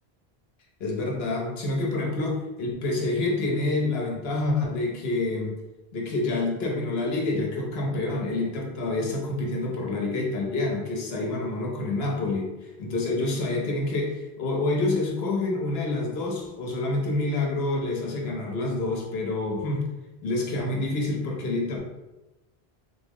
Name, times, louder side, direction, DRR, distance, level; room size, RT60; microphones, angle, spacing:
voice 1, 0.8-5.5 5.9-19.8 20.2-21.8, left 2 dB, 80° left, 0 dB, 1.0 m, -27 dB
3.8 x 2.0 x 3.5 m, 1.0 s
omnidirectional pair, 1.0 m